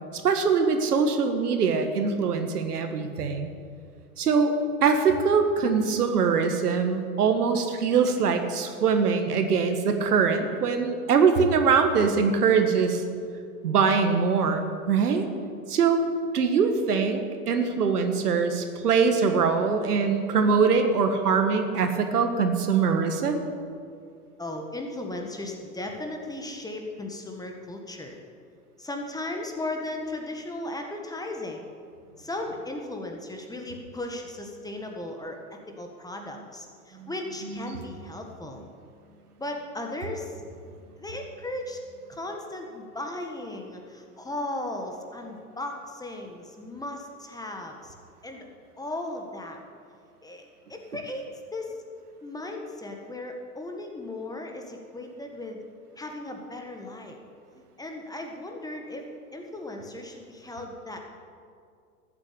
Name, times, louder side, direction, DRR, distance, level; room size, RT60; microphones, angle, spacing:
voice 1, 0.1-3.5 4.2-4.5 4.8-13.0 13.6-15.3 15.7-16.0 16.3-17.2 17.5-23.4 37.7-37.8, right 5 dB, 75° right, 6 dB, 1.7 m, -23 dB
voice 2, 24.4-28.2 28.8-31.7 32.2-35.4 35.8-38.6 39.4-40.4 41.0-41.8 42.1-47.9 48.2-48.4 48.8-49.6 50.2-51.3 51.5-51.8 52.2-55.6 56.0-57.2 57.8-59.0 59.3-61.0, left 2 dB, 10° left, 2 dB, 1.6 m, -36 dB
13.5 x 8.1 x 8.5 m, 2.3 s
hypercardioid pair, 105°, 46 cm